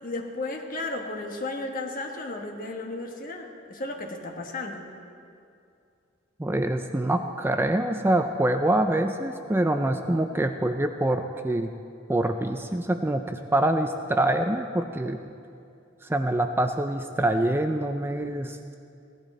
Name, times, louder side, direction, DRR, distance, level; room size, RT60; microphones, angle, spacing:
voice 1, 0.0-4.9, left 2 dB, 45° left, 2 dB, 1.3 m, -34 dB
voice 2, 6.4-11.7 12.1-15.2 16.0-18.7, right 1 dB, 10° right, 6 dB, 0.4 m, -25 dB
17.5 x 11.5 x 4.3 m, 2.5 s
head